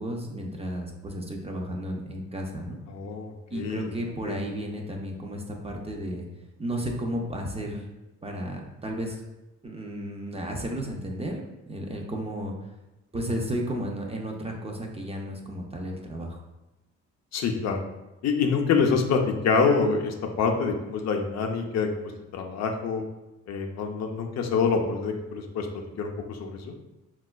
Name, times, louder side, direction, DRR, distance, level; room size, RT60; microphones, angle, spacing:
voice 1, 0.0-2.8 3.5-6.3 6.6-7.9 8.2-9.2 9.6-12.5 13.1-16.4, equal, 20° right, 1 dB, 0.4 m, -33 dB
voice 2, 2.9-3.9 4.2-4.4 17.3-17.8 18.2-23.0 23.5-25.7 26.0-26.7, left 5 dB, 60° left, 3 dB, 0.5 m, -26 dB
4.0 x 2.3 x 2.2 m, 0.99 s
cardioid pair, 90°, 30 cm